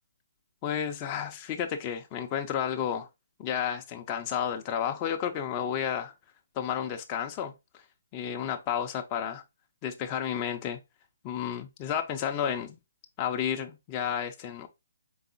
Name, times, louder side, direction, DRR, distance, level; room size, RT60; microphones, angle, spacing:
voice 1, 0.6-3.1 3.4-6.1 6.6-7.8 8.1-9.4 9.8-10.8 11.2-12.8 13.2-14.7, left 8 dB, 25° left, 0.5 m, -31 dB
3.9 x 3.6 x 2.6 m
hypercardioid pair, 150°, 0 cm